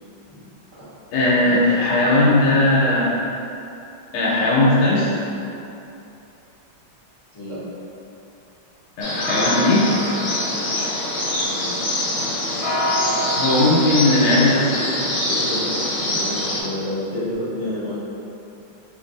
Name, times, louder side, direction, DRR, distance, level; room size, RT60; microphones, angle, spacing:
voice 1, 1.1-3.1 4.1-5.1 9.0-9.9 13.4-14.6, left 2 dB, 90° left, -6 dB, 1.5 m, -17 dB
voice 2, 1.9-2.3 7.3-7.6 14.2-14.9 15.2-15.7 16.0-17.9, left 1 dB, 30° left, -13 dB, 0.5 m, -30 dB
sound 1, 9.0-16.6, left 1 dB, 65° left, 1.2 m, -24 dB
3.1 x 2.6 x 3.8 m, 2.8 s
omnidirectional pair, 2.3 m